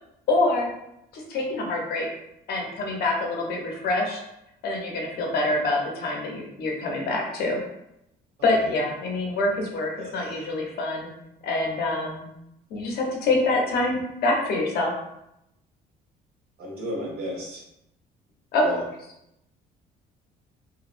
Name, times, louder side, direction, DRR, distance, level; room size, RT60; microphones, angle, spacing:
voice 1, 0.3-0.7 1.1-2.1 2.5-4.2 4.6-7.6 8.4-11.1 11.4-12.3 12.7-14.9 18.5-18.7, left 2 dB, 70° left, -1 dB, 0.8 m, -25 dB
voice 2, 10.0-10.4 16.6-17.6 18.6-18.8, left 1 dB, 70° right, -3 dB, 1.3 m, -34 dB
2.9 x 2.3 x 2.5 m, 0.82 s
cardioid pair, 110°, 17 cm